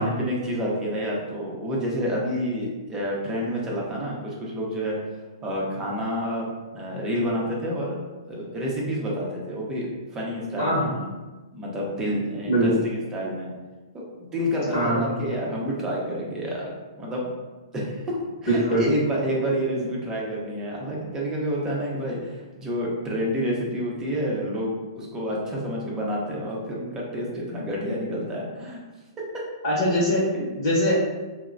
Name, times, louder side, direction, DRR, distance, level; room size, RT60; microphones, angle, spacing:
voice 1, 0.0-5.0 5.4-8.0 8.3-9.9 10.1-11.1 11.5-13.5 13.9-14.0 14.3-17.3 17.7-18.2 18.4-28.8 30.3-30.4, equal, 20° right, -4 dB, 0.7 m, -29 dB
voice 2, 10.6-10.9 12.5-12.8 14.7-15.1 18.5-18.8 29.6-30.2 30.5-30.9, equal, 40° left, -9 dB, 1.0 m, -22 dB
2.9 x 2.1 x 2.5 m, 1.2 s
hypercardioid pair, 130°, 3 cm